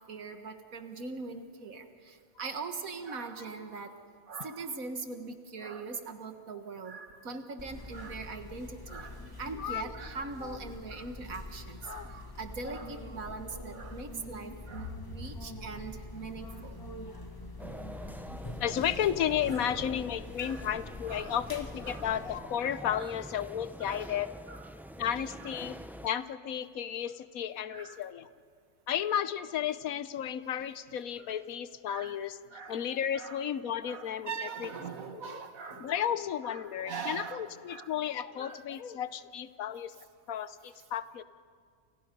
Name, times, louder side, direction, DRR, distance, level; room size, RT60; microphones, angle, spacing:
voice 1, 0.1-3.9 4.3-16.8 18.3-18.4 19.5-19.8 20.4-20.7 21.1-21.4 21.8-22.1 22.9-23.1 23.8-24.1 24.5-24.7 27.7-28.0 31.9-32.2 32.5-32.8 33.1-33.4 33.8-35.9 36.5-37.4 37.7-37.9 38.4-38.6, right 4 dB, 80° right, 7 dB, 2.0 m, -41 dB
sound 1, 7.6-22.4, left 2 dB, 15° left, 1.4 m, -45 dB
voice 2, 9.5-9.9 10.4-10.6 11.9-12.1 18.6-24.3 25.0-25.8 26.0-28.3 28.9-32.4 32.6-34.7 35.1-35.4 35.8-39.9 40.3-41.2, left 9 dB, 85° left, 14 dB, 1.3 m, -33 dB
sound 2, 14.7-20.7, equal, 35° left, 8.3 m, -48 dB
sound 3, 17.6-26.1, equal, 5° right, 0.3 m, -46 dB
29.5 x 28.5 x 5.4 m, 2.2 s
omnidirectional pair, 1.4 m